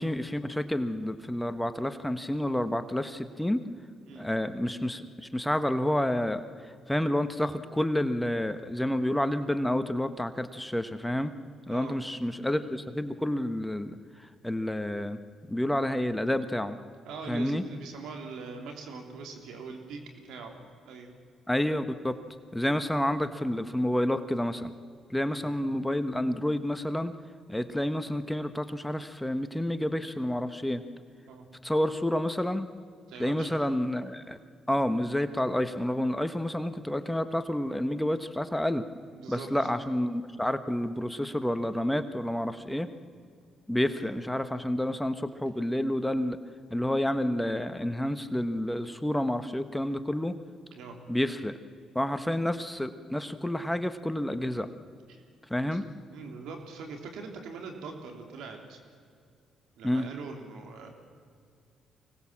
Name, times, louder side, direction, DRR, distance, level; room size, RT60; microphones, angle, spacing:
voice 1, 0.0-3.6 4.1-11.3 11.7-15.2 15.5-16.8 17.3-17.6 21.5-22.1 22.5-24.7 25.1-27.1 27.5-30.8 31.6-32.7 33.2-34.4 34.7-38.8 39.3-42.9 43.7-46.4 46.7-50.4 51.1-51.6 51.9-54.7 55.5-55.9 59.8-60.1, left 1 dB, 5° left, 10 dB, 1.3 m, -29 dB
voice 2, 17.0-20.6 20.8-21.1 25.3-25.5 31.3-31.4 33.1-33.6 39.1-39.7 43.9-44.2 50.7-51.0 55.1-55.2 55.6-55.8 56.1-58.8 59.8-61.0, right 4 dB, 75° right, 3 dB, 3.3 m, -42 dB
24.5 x 19.0 x 7.4 m, 2.2 s
hypercardioid pair, 55°, 0 cm